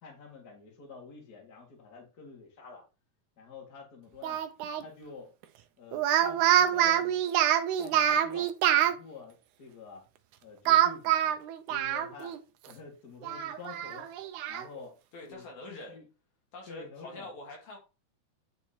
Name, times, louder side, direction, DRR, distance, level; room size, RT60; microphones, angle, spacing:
voice 1, 0.0-2.8 3.4-4.4 4.8-5.3 5.8-7.3 7.8-10.0 10.4-11.3 11.7-12.4 12.7-14.1 14.5-15.0 15.3-16.0 16.7-17.3, left 4 dB, 35° left, 0 dB, 2.0 m, -48 dB
Speech, 4.2-4.8 5.9-9.0 10.7-12.4 12.7-12.8 13.2-14.7, right 11 dB, 80° right, 1.8 m, -26 dB
voice 2, 15.1-16.0 16.5-17.8, left 2 dB, 60° left, -1 dB, 2.8 m, -45 dB
9.8 x 4.7 x 2.9 m, 0.31 s
omnidirectional pair, 4.1 m